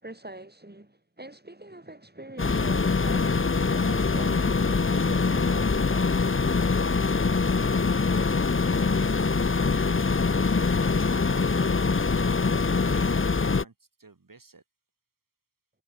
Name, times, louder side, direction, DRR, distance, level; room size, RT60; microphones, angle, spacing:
voice 1, 0.0-6.1, right 1 dB, 30° right, 7.2 m, -43 dB
sound 1, 2.4-13.6, left 4 dB, 40° left, 0.8 m, -24 dB
voice 2, 12.7-14.6, right 3 dB, 80° right, 3.4 m, -54 dB
wide cardioid pair, 50°, 33 cm